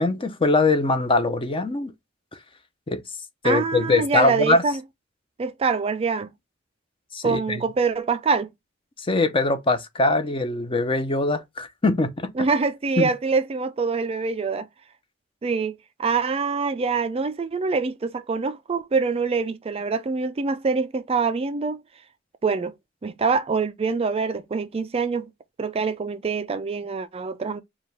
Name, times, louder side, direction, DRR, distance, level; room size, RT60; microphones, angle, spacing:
voice 1, 0.0-1.9 2.9-3.0 3.4-4.6 7.1-7.6 9.0-12.5 13.0-13.1, left 2 dB, 25° left, 0.6 m, -22 dB
voice 2, 3.4-4.8 5.4-6.3 7.2-8.5 12.4-14.7 15.4-21.8 22.4-22.7 23.0-25.3 25.6-27.6, right 4 dB, 30° right, 0.4 m, -25 dB
4.7 x 2.4 x 3.3 m
head